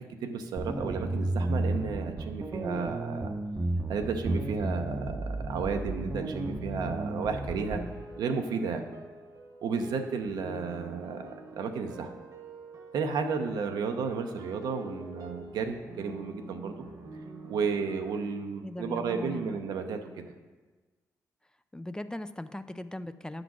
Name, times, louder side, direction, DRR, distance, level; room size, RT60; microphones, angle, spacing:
voice 1, 0.0-3.3 3.9-7.8 8.2-8.8 9.6-12.1 12.9-16.7 17.5-20.3, right 5 dB, 80° right, 5 dB, 0.7 m, -33 dB
sound 1, 0.6-7.9, right 2 dB, 30° right, 0.7 m, -33 dB
sound 2, 6.1-18.2, right 2 dB, 60° right, 1.1 m, -47 dB
voice 2, 18.6-19.6 21.7-23.4, left 1 dB, 10° left, 11 dB, 0.4 m, -39 dB
9.1 x 3.9 x 6.0 m, 1.3 s
supercardioid pair, 60°, 7 cm